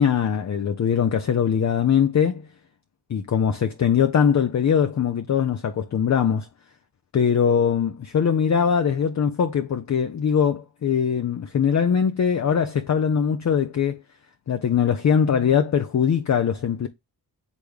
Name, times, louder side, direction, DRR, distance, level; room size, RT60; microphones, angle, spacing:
voice 1, 0.0-2.5 3.1-6.5 7.1-14.0 14.5-16.9, left 7 dB, 45° left, 0.6 m, -21 dB
8.3 x 3.4 x 3.4 m
cardioid pair, 95°, 38 cm